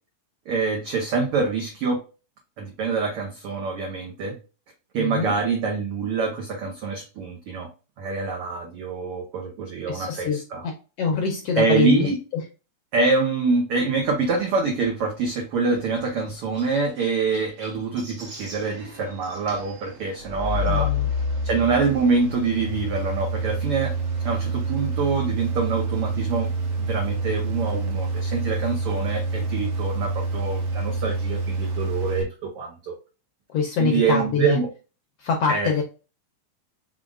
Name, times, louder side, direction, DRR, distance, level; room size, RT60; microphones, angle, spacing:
voice 1, 0.5-2.0 2.6-4.4 4.9-7.7 8.0-10.6 11.5-12.2 12.9-20.9 21.4-23.9 24.2-26.5 26.8-32.9 33.8-34.7 35.5-35.8, right 4 dB, 80° right, 2 dB, 1.2 m, -25 dB
voice 2, 5.0-5.3 9.9-10.7 11.0-12.1 12.3-12.4 20.7-21.1 33.5-34.6 35.2-35.8, left 6 dB, 75° left, 2 dB, 1.4 m, -24 dB
Chirp tweet, 15.2-19.5 20.6-20.8 21.5-21.6 21.8-21.9 23.2-23.3, right 2 dB, 20° right, 1.0 m, -46 dB
sound 1, 18.2-32.2, right 2 dB, 60° right, 1.7 m, -28 dB
5.0 x 3.7 x 2.4 m, 0.33 s
omnidirectional pair, 3.6 m